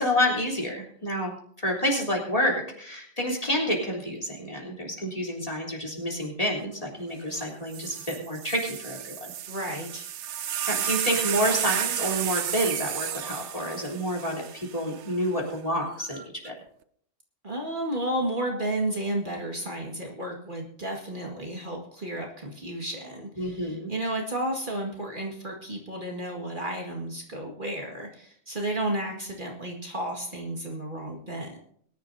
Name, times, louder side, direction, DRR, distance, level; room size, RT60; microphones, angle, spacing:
voice 1, 0.0-9.3 10.7-16.5 18.5-18.6 23.4-23.9, equal, 30° left, 0 dB, 3.6 m, -29 dB
sound 1, 7.4-7.5 7.7-15.1 16.0-16.5, right 10 dB, 70° right, 1.0 m, -32 dB
voice 2, 9.5-10.1 17.4-31.6, right 1 dB, 40° right, 0 dB, 2.1 m, -32 dB
22.5 x 11.0 x 2.7 m, 0.63 s
omnidirectional pair, 1.3 m